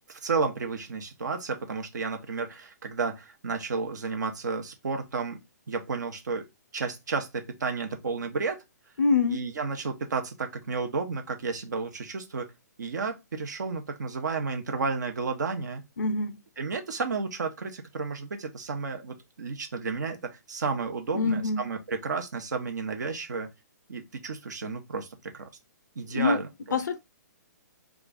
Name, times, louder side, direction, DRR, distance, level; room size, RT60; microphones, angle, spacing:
voice 1, 0.2-5.4 5.7-6.5 6.7-8.6 9.3-12.5 12.8-15.8 16.6-23.5 23.9-25.1 25.3-25.5 26.0-26.8, right 4 dB, 80° right, 0.8 m, -32 dB
voice 2, 9.0-9.4 16.0-16.4 21.1-21.6 26.1-26.4 26.7-27.0, left 4 dB, 90° left, 0.4 m, -25 dB
3.0 x 2.4 x 3.7 m
hypercardioid pair, 135°, 10 cm